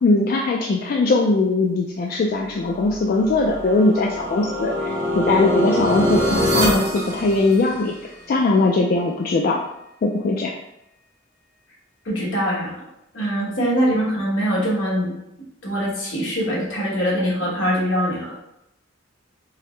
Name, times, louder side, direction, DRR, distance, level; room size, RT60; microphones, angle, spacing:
voice 1, 0.0-9.6 10.0-10.5, left 3 dB, 50° left, 0 dB, 0.3 m, -20 dB
sound 1, 2.8-8.0, equal, 70° right, 1.3 m, -24 dB
voice 2, 12.0-12.9 13.1-15.2 15.6-18.4, equal, 75° left, -5 dB, 1.3 m, -23 dB
4.6 x 2.0 x 3.1 m, 0.84 s
head